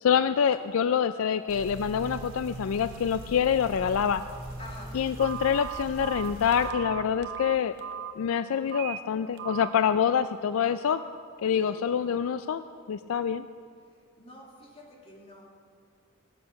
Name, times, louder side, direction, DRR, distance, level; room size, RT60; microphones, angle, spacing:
voice 1, 0.0-4.2 4.9-7.7 8.2-11.0 11.4-12.6 12.9-13.4, left 7 dB, 70° left, 12 dB, 0.4 m, -26 dB
sound 1, 1.5-6.7, right 1 dB, 75° right, 2.4 m, -41 dB
voice 2, 4.6-4.9 11.4-11.8 14.2-15.7, left 1 dB, 30° left, -3 dB, 2.6 m, -48 dB
Telephone, 5.2-8.1 8.7-9.0 9.4-9.7, right 10 dB, 50° right, 0.8 m, -37 dB
18.5 x 8.5 x 5.9 m, 2.2 s
head